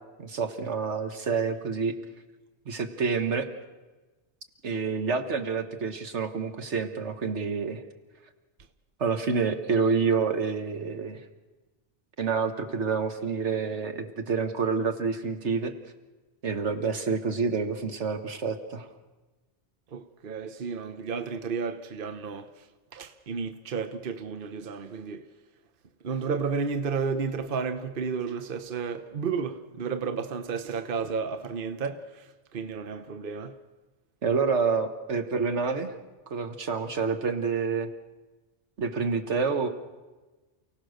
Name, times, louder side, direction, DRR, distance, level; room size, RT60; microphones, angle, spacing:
voice 1, 0.2-1.9 2.7-3.5 4.6-7.8 9.0-11.2 12.2-15.7 16.4-18.9 34.2-35.9 36.3-37.9 38.8-39.7, right 5 dB, 75° right, 1.7 m, -28 dB
voice 2, 19.9-22.6 22.9-25.2 26.0-33.6, right 5 dB, 50° right, 1.1 m, -32 dB
29.5 x 17.0 x 6.5 m
omnidirectional pair, 1.2 m